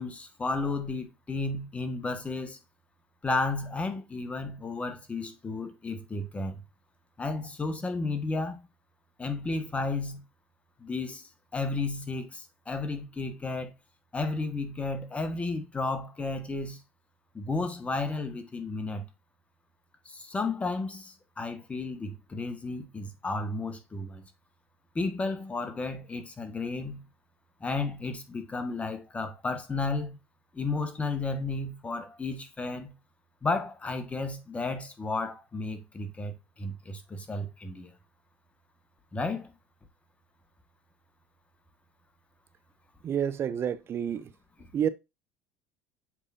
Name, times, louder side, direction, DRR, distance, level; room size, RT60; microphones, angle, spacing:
voice 1, 0.0-2.6 3.2-6.6 7.2-8.6 9.2-10.2 10.8-13.7 14.1-16.8 17.3-19.0 20.0-24.2 24.9-27.0 27.6-30.2 30.5-32.9 33.4-37.9 39.1-39.5, left 3 dB, 20° left, 1.4 m, -33 dB
voice 2, 43.0-44.3 44.7-44.9, right 9 dB, 40° right, 0.7 m, -29 dB
7.4 x 4.9 x 2.6 m
supercardioid pair, 90°, 6 cm